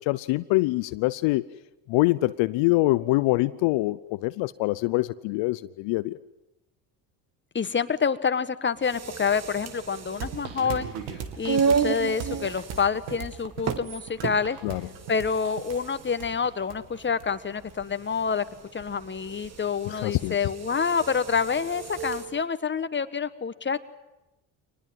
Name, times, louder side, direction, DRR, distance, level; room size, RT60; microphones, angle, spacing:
voice 1, 0.0-1.5 1.9-6.2 14.6-14.8 19.9-20.4, left 20 dB, 70° left, 14 dB, 0.8 m, -24 dB
voice 2, 7.5-10.9 11.4-14.6 15.1-18.4 18.7-23.8, left 6 dB, 25° left, 12 dB, 1.3 m, -27 dB
sound 1, 8.8-22.3, right 6 dB, 35° right, 1.6 m, -33 dB
sound 2, 10.2-17.7, right 7 dB, 85° right, 2.4 m, -38 dB
24.0 x 19.5 x 9.3 m, 0.97 s
supercardioid pair, 70°, 47 cm